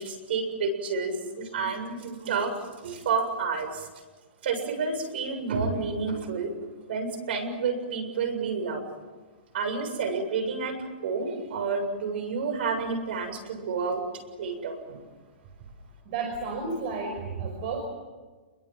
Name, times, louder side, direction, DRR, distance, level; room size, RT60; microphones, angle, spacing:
voice 1, 0.0-2.5 2.8-3.9 4.4-6.5 6.9-8.8 9.5-14.0 14.4-15.0, right 4 dB, 65° right, 8 dB, 7.2 m, -30 dB
voice 2, 16.1-17.8, right 4 dB, 45° right, 3 dB, 5.8 m, -32 dB
29.0 x 22.5 x 7.7 m, 1.3 s
hypercardioid pair, 155°, 6 cm